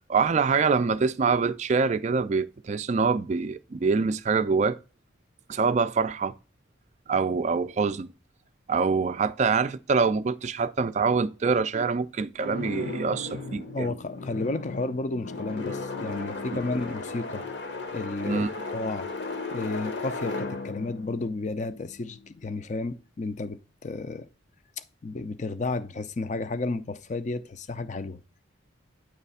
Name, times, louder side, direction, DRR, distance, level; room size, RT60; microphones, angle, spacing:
voice 1, 0.1-4.8 5.5-6.3 7.1-8.1 8.7-14.0 16.5-16.6 18.2-18.5, right 5 dB, 35° right, 0.3 m, -25 dB
sound 1, 12.4-22.4, left 3 dB, 60° left, 1.0 m, -36 dB
voice 2, 13.7-17.4 17.9-18.5 18.7-19.1 19.5-24.3 25.0-28.2, left 3 dB, 35° left, 0.4 m, -32 dB
8.9 x 3.3 x 5.5 m
head